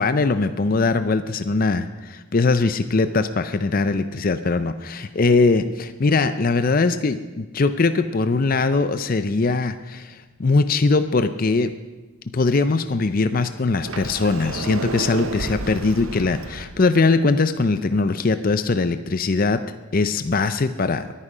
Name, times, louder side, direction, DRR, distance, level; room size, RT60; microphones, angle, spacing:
voice 1, 0.0-11.7 12.3-19.6 19.9-21.1, left 3 dB, 40° left, 11 dB, 0.5 m, -21 dB
Sliding door, 13.7-16.7, right 3 dB, 70° right, 0.8 m, -31 dB
22.5 x 9.8 x 5.0 m, 1.2 s
head